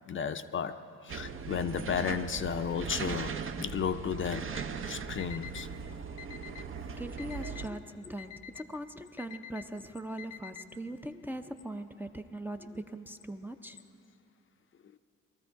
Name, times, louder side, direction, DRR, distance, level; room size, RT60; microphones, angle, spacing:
voice 1, 0.1-4.5 4.9-5.7, left 7 dB, 40° left, 10 dB, 0.5 m, -33 dB
sound 1, 1.1-7.7, right 6 dB, 45° right, 0.7 m, -39 dB
Alarm, 4.5-4.6 5.2-5.7 6.2-6.7 7.2-7.7 8.2-8.7 9.2-9.7 10.2-10.7, left 9 dB, 85° left, 0.6 m, -46 dB
voice 2, 7.0-13.8, right 1 dB, 5° right, 4 dB, 0.5 m, -41 dB
19.0 x 13.5 x 4.6 m, 2.7 s
cardioid pair, 90°, 30 cm